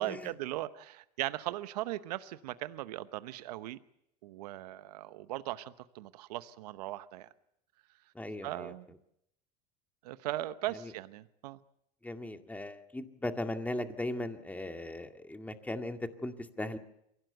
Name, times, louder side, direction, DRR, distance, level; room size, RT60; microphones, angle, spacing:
voice 1, 0.0-3.8 4.2-7.3 8.4-8.9 10.0-11.6, right 15 dB, 85° right, 13 dB, 0.9 m, -38 dB
voice 2, 8.2-8.7 10.8-10.9 12.0-16.8, left 1 dB, 10° left, 6 dB, 2.1 m, -38 dB
23.5 x 17.0 x 8.1 m, 0.79 s
supercardioid pair, 90°, 20 cm